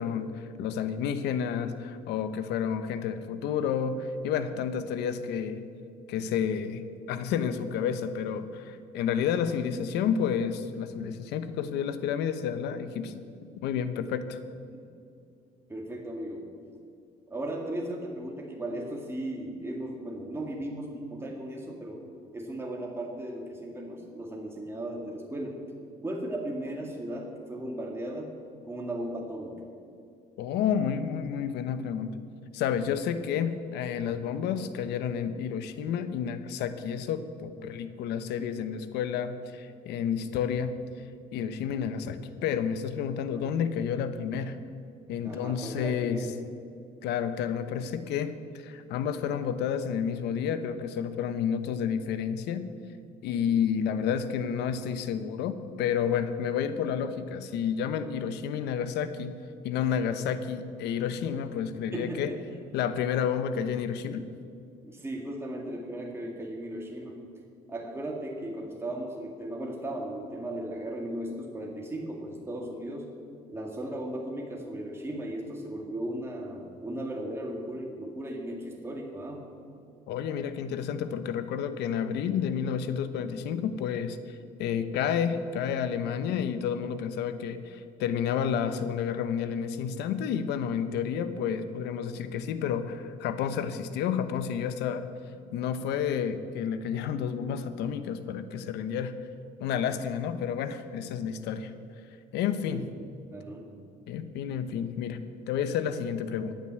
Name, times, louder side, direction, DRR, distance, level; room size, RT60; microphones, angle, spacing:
voice 1, 0.0-5.6 6.1-6.8 7.1-13.2 13.6-14.4 30.4-32.2 32.5-40.8 41.3-44.5 45.1-46.3 47.0-52.6 53.2-59.3 59.6-62.3 62.7-64.3 80.1-95.1 95.5-99.1 99.6-101.7 102.3-102.9 104.1-106.5, left 7 dB, 85° left, 11 dB, 1.0 m, -30 dB
voice 2, 15.7-16.5 17.3-22.0 22.3-25.6 26.0-28.3 28.7-29.6 45.2-46.3 53.5-53.8 61.9-62.4 64.8-67.2 67.7-73.1 73.5-79.4 102.6-102.8 103.3-103.7, right 1 dB, 15° right, -1 dB, 2.2 m, -36 dB
14.0 x 9.3 x 7.6 m, 2.5 s
cardioid pair, 110°, 17 cm